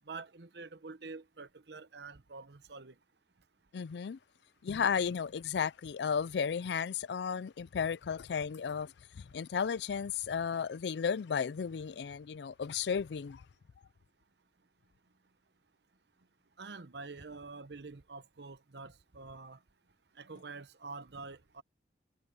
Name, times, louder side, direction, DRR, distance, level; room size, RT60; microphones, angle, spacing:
voice 1, 0.0-3.0 3.4-3.7 13.8-13.9 14.6-15.4 16.2-16.3 16.5-21.6, right 4 dB, 70° right, 0.9 m, -48 dB
voice 2, 3.7-4.2 4.6-13.4, left 6 dB, 75° left, 0.4 m, -34 dB
head